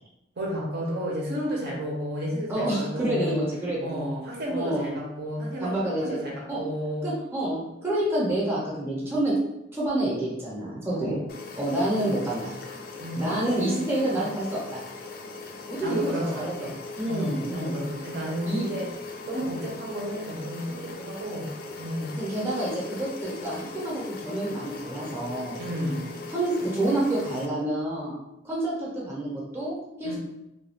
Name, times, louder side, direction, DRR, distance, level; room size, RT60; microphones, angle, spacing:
voice 1, 0.4-3.4 3.8-7.1 10.9-11.3 12.9-14.2 15.8-16.8 17.1-18.9 19.3-21.5 21.8-22.2 25.5-26.1 30.0-30.2, equal, 55° right, -3 dB, 0.7 m, -32 dB
voice 2, 2.5-4.1 4.5-4.9 5.6-6.2 6.5-6.6 7.0-9.3 9.7-11.2 11.6-12.6 13.1-14.8 15.7-16.7 17.0-17.8 18.5-18.7 22.2-25.6 26.3-28.2 28.4-30.2, right 1 dB, 10° right, -6 dB, 0.7 m, -28 dB
sound 1, 11.3-27.5, left 3 dB, 50° left, 0.3 m, -40 dB
2.3 x 2.3 x 3.2 m, 0.88 s
head